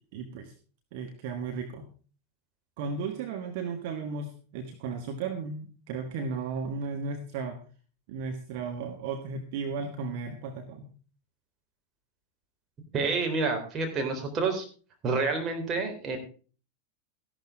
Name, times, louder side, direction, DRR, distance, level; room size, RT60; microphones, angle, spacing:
voice 1, 0.1-0.5 0.9-1.9 2.8-7.6 8.1-10.9, right 5 dB, 50° right, 5 dB, 1.5 m, -35 dB
voice 2, 12.9-14.7 15.0-16.2, right 4 dB, 25° right, 3 dB, 3.7 m, -28 dB
14.5 x 11.5 x 3.7 m, 0.38 s
figure-of-eight pair, 90°, 0 cm